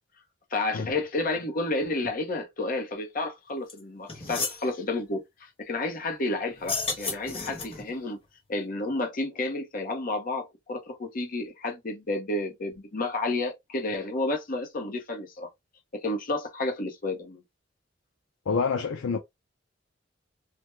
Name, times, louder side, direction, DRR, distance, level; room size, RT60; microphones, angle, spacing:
voice 1, 0.5-8.2 8.5-15.5 16.0-17.4, left 2 dB, 45° left, 0.7 m, -31 dB
sound 1, 3.7-3.8 4.1-4.6 6.6-7.9, left 3 dB, 30° left, 1.0 m, -32 dB
voice 2, 18.5-19.2, left 5 dB, 90° left, 0.5 m, -27 dB
3.3 x 2.1 x 3.1 m
head